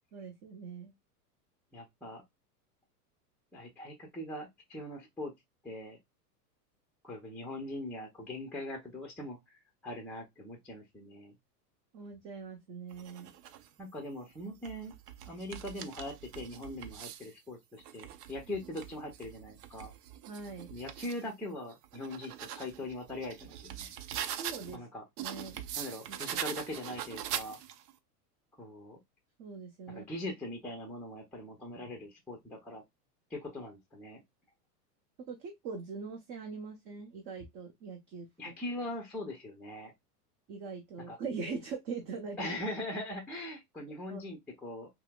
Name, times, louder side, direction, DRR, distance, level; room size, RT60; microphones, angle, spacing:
voice 1, 0.1-0.9 11.9-13.3 20.3-20.7 24.4-24.8 25.2-25.6 26.1-26.5 29.4-30.1 35.3-38.5 40.5-42.5 44.1-44.2, right 4 dB, 35° right, 0.8 m, -42 dB
voice 2, 1.7-2.2 3.5-5.3 5.6-6.0 7.0-11.3 13.8-14.9 15.3-19.9 20.7-23.9 24.7-25.0 25.8-27.6 28.6-29.0 29.9-32.8 33.3-34.2 38.4-39.9 41.1-41.2 42.4-44.9, left 1 dB, 5° left, 0.5 m, -41 dB
sound 1, 12.9-13.7 14.4-17.3 17.8-21.2 21.7-24.8 25.2-27.9, right 10 dB, 75° right, 0.6 m, -42 dB
5.4 x 2.1 x 2.2 m
hypercardioid pair, 125°, 47 cm